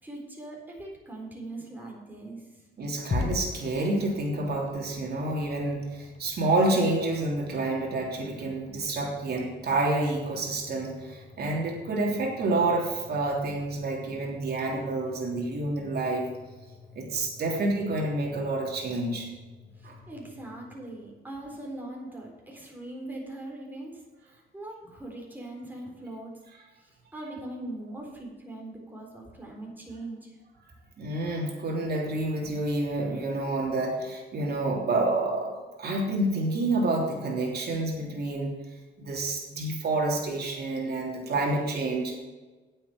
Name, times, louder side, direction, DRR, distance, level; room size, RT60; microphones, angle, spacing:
voice 1, 0.0-2.4 19.8-24.0 24.5-26.3 27.1-30.3, right 1 dB, 10° right, -2 dB, 3.9 m, -40 dB
voice 2, 2.8-16.3 16.9-19.3 19.8-20.0 31.0-38.6 39.0-42.1, right 2 dB, 55° right, -1 dB, 3.2 m, -28 dB
sound 1, 3.1-21.3, left 4 dB, 35° left, 1.6 m, -43 dB
9.0 x 7.8 x 6.8 m, 1.2 s
cardioid pair, 90°, 20 cm